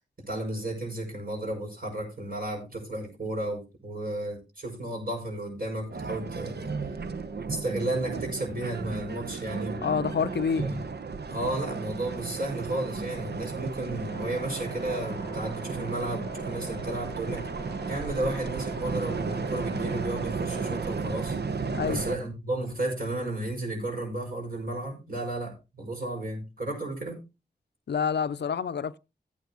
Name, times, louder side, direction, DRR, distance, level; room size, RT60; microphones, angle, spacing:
voice 1, 0.3-6.7 7.5-9.8 10.6-10.8 11.3-17.4 17.9-27.2, right 1 dB, 55° right, 5.9 m, -33 dB
sound 1, 5.9-22.2, right 4 dB, 70° right, 0.8 m, -34 dB
voice 2, 9.8-10.7 21.7-22.0 27.9-29.0, left 6 dB, 80° left, 0.5 m, -27 dB
sound 2, 14.1-20.9, right 1 dB, 90° right, 6.7 m, -42 dB
15.0 x 9.2 x 2.9 m
cardioid pair, 40°, 18 cm